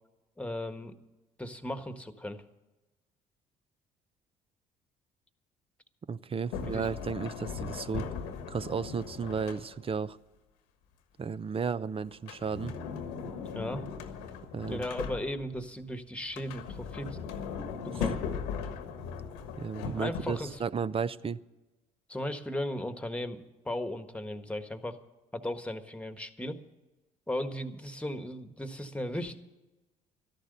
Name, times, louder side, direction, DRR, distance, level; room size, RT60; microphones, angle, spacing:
voice 1, 0.4-1.0 1.4-2.4 6.5-6.9 13.5-13.8 14.7-17.3 17.8-18.2 19.9-20.5 22.1-25.0 25.3-26.6 27.3-29.4, left 1 dB, 5° left, 8 dB, 1.5 m, -36 dB
voice 2, 6.1-8.1 8.5-10.2 11.2-12.7 14.5-14.9 19.6-21.4, right 6 dB, 35° right, 16 dB, 0.6 m, -33 dB
Sliding door, 6.5-10.0 12.1-15.6 16.2-20.6, left 6 dB, 90° left, 1.4 m, -38 dB
13.0 x 11.5 x 6.8 m, 1.1 s
supercardioid pair, 65°, 17 cm